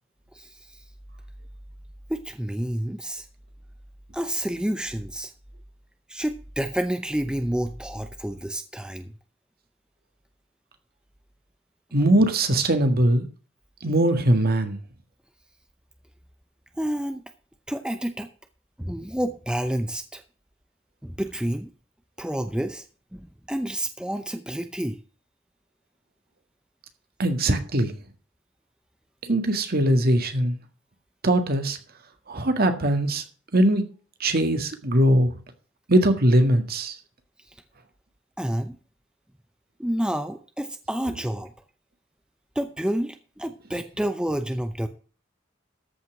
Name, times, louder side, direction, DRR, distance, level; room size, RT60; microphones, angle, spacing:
voice 1, 0.3-0.8 2.1-3.3 4.1-5.3 6.1-9.1 16.8-17.2 17.7-18.3 18.8-20.2 21.0-21.7 22.2-22.9 23.1-25.0 38.4-38.8 39.8-41.5 42.6-44.9, right 1 dB, 5° right, 0.7 m, -29 dB
voice 2, 11.9-13.2 13.8-14.8 27.2-27.9 29.3-30.6 31.2-31.8 32.3-33.2 33.5-33.8 34.2-35.4 35.9-37.0, right 1 dB, 50° right, 1.8 m, -21 dB
13.5 x 5.7 x 6.0 m
head